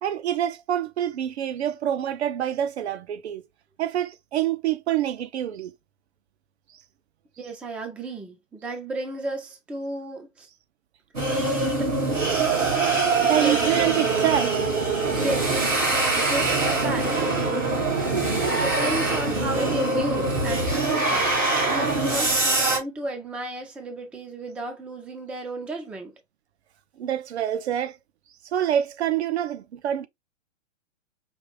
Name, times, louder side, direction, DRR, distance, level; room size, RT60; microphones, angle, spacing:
voice 1, 0.0-3.4 3.8-5.7 12.5-12.6 13.2-14.7 27.0-28.0 28.5-30.1, right 11 dB, 60° right, 0.6 m, -26 dB
voice 2, 7.4-10.5 11.8-11.9 12.7-13.9 15.1-26.1, right 2 dB, 5° right, 0.4 m, -33 dB
sound 1, 11.1-22.8, right 3 dB, 85° right, 2.9 m, -23 dB
5.2 x 2.4 x 3.3 m
figure-of-eight pair, 115°, 38 cm